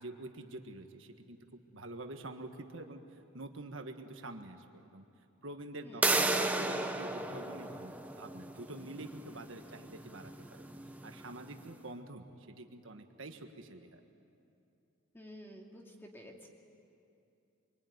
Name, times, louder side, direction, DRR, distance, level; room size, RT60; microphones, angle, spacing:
voice 1, 0.0-5.0 5.4-10.3 10.9-14.0, right 2 dB, 65° right, 5 dB, 1.6 m, -46 dB
sound 1, 6.0-11.6, right 2 dB, 5° right, 1.0 m, -35 dB
voice 2, 15.1-16.5, equal, 10° left, 0 dB, 2.6 m, -51 dB
25.5 x 23.5 x 9.5 m, 2.7 s
head